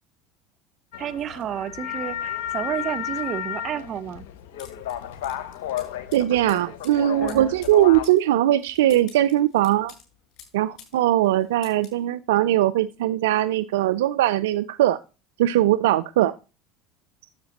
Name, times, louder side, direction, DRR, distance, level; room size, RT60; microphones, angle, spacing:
sound 1, 0.9-8.1, left 10 dB, 70° left, 0.9 m, -33 dB
voice 1, 1.0-4.2 7.2-7.5, right 9 dB, 45° right, 0.8 m, -31 dB
sound 2, 4.6-11.0 11.2-12.0, left 8 dB, 55° left, 4.6 m, -50 dB
voice 2, 6.1-9.9 10.5-15.0 15.4-16.3, right 13 dB, 75° right, 0.4 m, -20 dB
11.5 x 7.3 x 2.9 m
hypercardioid pair, 75°, 0 cm